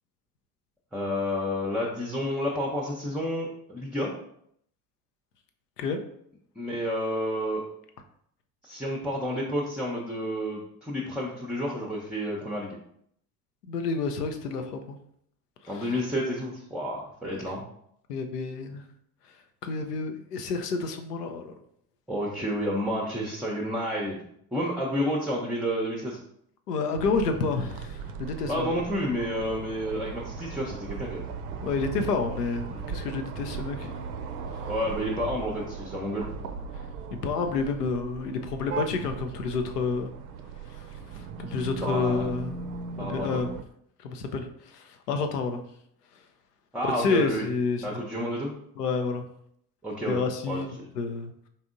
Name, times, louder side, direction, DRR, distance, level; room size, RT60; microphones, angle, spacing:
voice 1, 0.9-4.1 6.6-7.6 8.6-12.8 15.7-17.6 22.1-24.2 24.5-26.2 28.5-31.2 34.7-36.3 41.8-42.3 43.0-43.4 46.7-47.5 47.8-48.5 49.8-50.2 50.5-50.9, equal, ahead, -3 dB, 0.6 m, -30 dB
voice 2, 13.7-15.0 15.6-15.9 17.3-17.4 18.1-18.8 19.6-21.5 26.7-28.7 31.6-34.0 34.5-34.7 37.1-40.1 40.7-40.8 41.1-42.7 43.0-43.5 44.0-45.6 47.0-47.9 48.8-49.3 50.1-51.3, left 4 dB, 85° left, 6 dB, 0.6 m, -29 dB
sound 1, 27.0-43.6, right 5 dB, 70° right, 0.5 m, -38 dB
4.2 x 3.4 x 2.5 m, 0.70 s
figure-of-eight pair, 60°, 47 cm